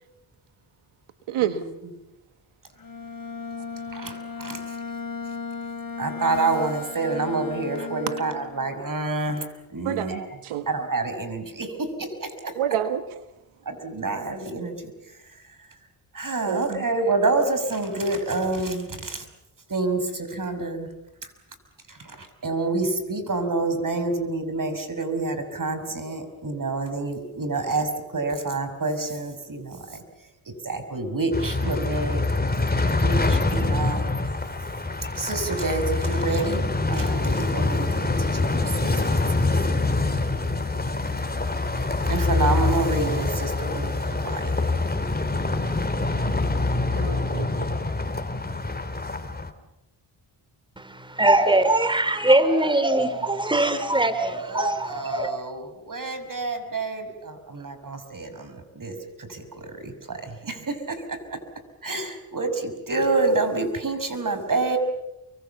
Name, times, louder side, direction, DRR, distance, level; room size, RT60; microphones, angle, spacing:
voice 1, 1.3-1.6 8.1-8.2 9.8-10.7 12.5-13.2 16.5-16.8 46.9-47.7, right 10 dB, 80° right, 9 dB, 1.4 m, -28 dB
Bowed string instrument, 2.8-8.8, left 5 dB, 40° left, 4.1 m, -36 dB
voice 2, 3.9-4.6 6.0-10.3 10.7-12.6 13.7-14.9 16.1-19.2 19.7-20.9 21.9-30.0 30.5-32.2 32.6-34.1 35.1-39.2 42.1-44.7 52.4-53.5 54.3-61.2 61.8-64.8, right 3 dB, 40° right, 9 dB, 5.9 m, -28 dB
sound 1, 31.3-49.5, left 3 dB, 20° left, 3.2 m, -25 dB
voice 3, 50.8-55.3, right 1 dB, 10° right, 11 dB, 3.0 m, -21 dB
29.5 x 24.0 x 7.1 m, 0.93 s
supercardioid pair, 55°, 49 cm